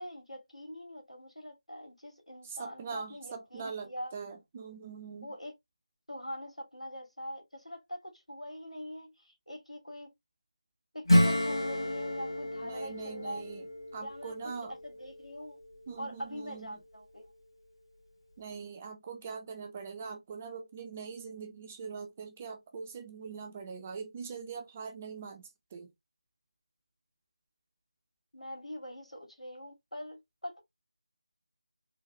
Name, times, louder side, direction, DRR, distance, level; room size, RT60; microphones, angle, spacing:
voice 1, 0.0-4.1 5.2-5.5 6.1-10.1 10.9-13.4 14.0-14.3 14.7-15.6 16.0-17.3 28.3-30.6, equal, 85° left, 2.2 m, -43 dB
voice 2, 2.4-5.3 12.6-14.7 15.9-16.8 18.4-25.9, right 5 dB, 15° right, 0.4 m, -42 dB
Acoustic guitar / Strum, 11.1-15.4, left 1 dB, 50° left, 1.7 m, -30 dB
3.8 x 2.2 x 3.0 m
figure-of-eight pair, 160°, 3 cm